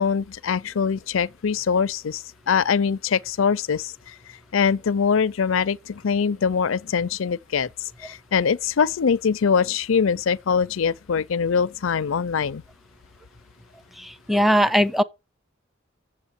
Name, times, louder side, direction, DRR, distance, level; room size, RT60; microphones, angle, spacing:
voice 1, 0.0-3.9 4.5-7.7 8.0-12.6, left 6 dB, 75° left, 0.5 m, -23 dB
voice 2, 14.0-15.0, equal, ahead, 0.5 m, -20 dB
7.5 x 7.3 x 8.1 m
head